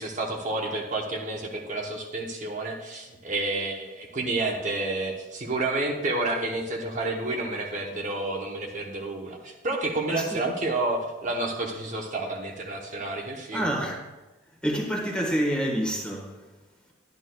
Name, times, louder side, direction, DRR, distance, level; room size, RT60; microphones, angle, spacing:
voice 1, 0.0-13.7, right 2 dB, 40° right, 0.9 m, -30 dB
voice 2, 10.1-10.5 13.5-14.1 14.6-16.4, equal, 5° left, 1.3 m, -28 dB
11.0 x 10.5 x 2.3 m
head